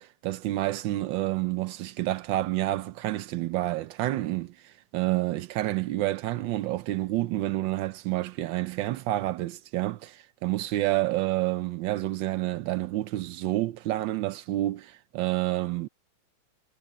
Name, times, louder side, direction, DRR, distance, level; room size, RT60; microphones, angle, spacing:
voice 1, 0.0-15.9, right 16 dB, 80° right, 1.4 m, -29 dB
omnidirectional pair, 2.0 m